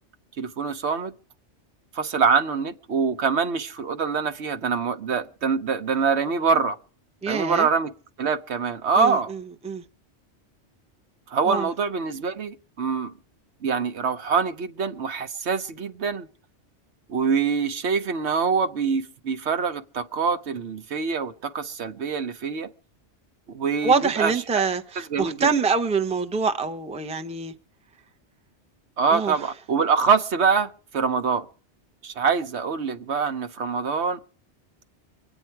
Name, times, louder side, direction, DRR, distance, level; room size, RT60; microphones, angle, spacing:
voice 1, 0.4-1.1 1.9-6.8 7.3-7.9 8.2-9.3 11.3-13.1 13.6-16.3 17.1-22.7 23.5-24.6 25.1-25.5 29.0-31.5 32.0-34.2, right 5 dB, 70° right, 1.2 m, -24 dB
voice 2, 7.2-7.7 9.0-9.8 11.5-11.7 23.8-27.5 29.1-29.4, right 5 dB, 5° right, 0.6 m, -25 dB
24.5 x 9.1 x 4.6 m
omnidirectional pair, 1.2 m